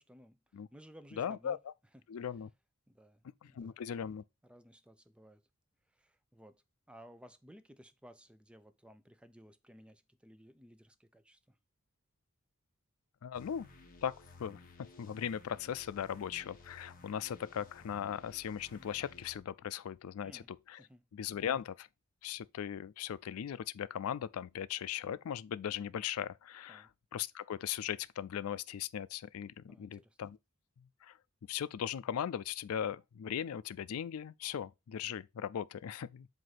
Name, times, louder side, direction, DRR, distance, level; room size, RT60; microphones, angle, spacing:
voice 1, 0.0-0.4 0.7-1.6 2.9-3.8 4.4-5.4 5.9-11.6 20.2-20.5 20.8-21.0 26.7-26.9 29.7-30.2, equal, 5° right, 0.5 m, -58 dB
voice 2, 1.2-1.6 2.1-2.5 3.4-4.2 13.2-13.7 14.0-14.1 14.4-20.4 20.7-20.8 21.1-21.9 22.2-30.4 31.0-31.2 31.5-36.3, left 9 dB, 80° left, 0.4 m, -38 dB
sound 1, 13.3-19.4, left 3 dB, 40° left, 1.2 m, -57 dB
7.8 x 2.6 x 5.8 m
head